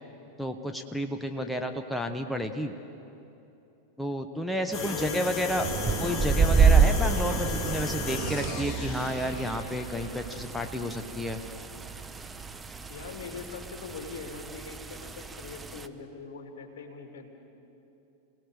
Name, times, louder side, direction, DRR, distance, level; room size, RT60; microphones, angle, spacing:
voice 1, 0.4-2.7 4.0-5.7 6.0-11.4, equal, 5° left, 6 dB, 1.1 m, -31 dB
voice 2, 1.4-1.7 4.6-5.7 12.9-17.3, left 4 dB, 55° left, 3 dB, 3.0 m, -41 dB
sound 1, 4.7-10.5, left 4 dB, 25° left, 2.6 m, -36 dB
sound 2, 5.6-13.6, right 12 dB, 40° right, 0.7 m, -38 dB
sound 3, 5.7-15.9, right 5 dB, 15° right, 0.8 m, -29 dB
28.0 x 18.5 x 6.7 m, 2.9 s
figure-of-eight pair, 90°, 0 cm